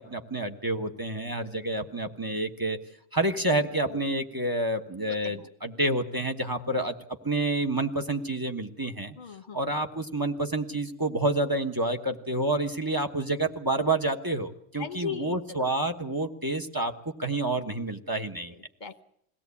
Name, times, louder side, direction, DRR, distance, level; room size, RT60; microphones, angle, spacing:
voice 1, 0.0-2.8 3.1-6.9 7.2-9.1 9.5-18.5, right 2 dB, 15° right, 6 dB, 1.3 m, -29 dB
voice 2, 5.1-5.5 6.7-6.8 9.2-9.6 14.8-15.4 18.5-19.0, left 7 dB, 40° left, 10 dB, 1.2 m, -38 dB
22.0 x 17.0 x 8.4 m, 0.71 s
omnidirectional pair, 1.3 m